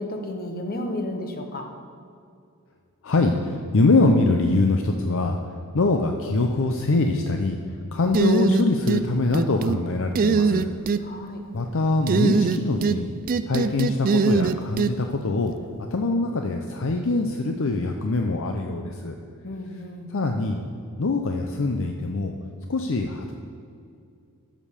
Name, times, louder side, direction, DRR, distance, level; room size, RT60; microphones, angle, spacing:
voice 1, 0.0-1.7 11.0-11.4 19.4-20.1, left 1 dB, 40° left, 4 dB, 1.2 m, -32 dB
voice 2, 3.0-5.4 5.7-7.6 7.9-10.6 11.5-13.1 13.4-15.5 15.9-19.2 20.1-20.6 21.0-22.3 22.7-23.3, left 3 dB, 60° left, 4 dB, 0.6 m, -23 dB
sound 1, 8.1-9.0 9.3-9.8 10.1-11.0 12.1-13.0 13.3-14.9, right 5 dB, 40° right, 0.3 m, -21 dB
12.5 x 5.2 x 6.6 m, 2.4 s
head